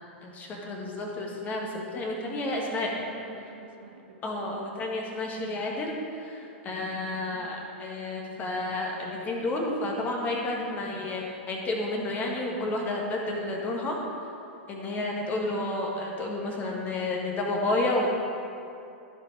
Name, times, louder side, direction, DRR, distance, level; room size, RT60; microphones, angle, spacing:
voice 1, 0.2-2.9 4.2-14.0 14.7-18.1, left 2 dB, 25° left, 0 dB, 1.6 m, -31 dB
voice 2, 2.3-4.6 6.8-7.5 15.0-15.4, right 4 dB, 60° right, 1 dB, 1.3 m, -47 dB
13.5 x 5.4 x 4.6 m, 2.7 s
figure-of-eight pair, 95°, 6 cm